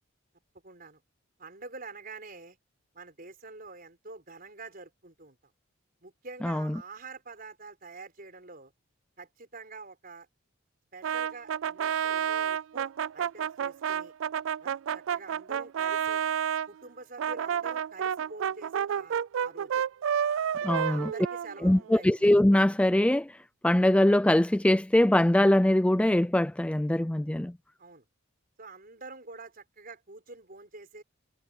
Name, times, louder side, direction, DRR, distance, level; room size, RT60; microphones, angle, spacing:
voice 1, 0.6-1.0 1.4-2.6 2.9-5.4 6.0-8.7 9.2-10.3 10.9-14.1 14.6-16.2 16.7-19.8 20.6-22.2 27.8-28.0 28.6-31.0, right 3 dB, 45° right, 5.4 m, -46 dB
voice 2, 6.4-6.7 20.6-21.1 21.6-23.3 23.6-27.5, left 1 dB, 5° left, 0.3 m, -22 dB
Brass instrument, 11.0-16.7 17.2-22.0, right 8 dB, 75° right, 0.3 m, -30 dB
head